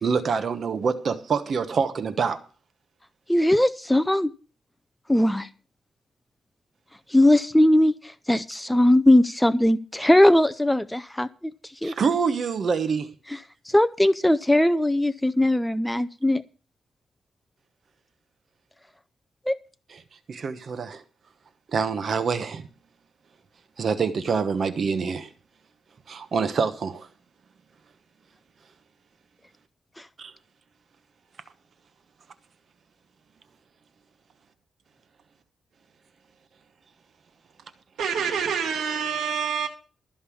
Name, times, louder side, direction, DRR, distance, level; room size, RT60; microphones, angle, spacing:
voice 1, 0.0-2.4 11.8-13.1 19.9-20.0 20.3-21.0 21.7-22.7 23.8-25.3 26.1-27.1 30.2-30.3, right 5 dB, 50° right, 1.0 m, -26 dB
voice 2, 3.3-4.3 5.1-5.5 7.1-11.5 11.8-11.9 13.7-16.4 19.5-19.6 30.0-30.1, left 1 dB, 5° left, 0.5 m, -20 dB
voice 3, 38.0-39.7, right 7 dB, 85° right, 1.3 m, -26 dB
13.0 x 5.4 x 8.4 m
cardioid pair, 120°, 0 cm